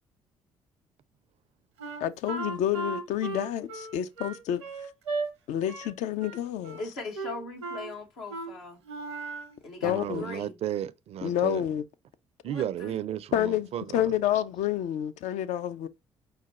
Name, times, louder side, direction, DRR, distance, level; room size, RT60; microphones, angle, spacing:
Wind instrument woodwind instrument, 1.8-5.3 5.7-5.9 6.2-6.9 7.1-7.9 8.3-8.5 8.8-9.6, right 3 dB, 85° right, 0.7 m, -36 dB
voice 1, 2.0-4.6 5.5-6.8 9.8-10.2 11.2-11.8 13.3-15.9, left 11 dB, 60° left, 0.4 m, -29 dB
voice 2, 6.8-8.8 9.6-10.6 12.4-12.9, left 3 dB, 80° left, 1.1 m, -40 dB
voice 3, 9.8-11.6 12.4-14.1, right 10 dB, 50° right, 0.4 m, -33 dB
4.9 x 2.3 x 4.0 m
hypercardioid pair, 45°, 14 cm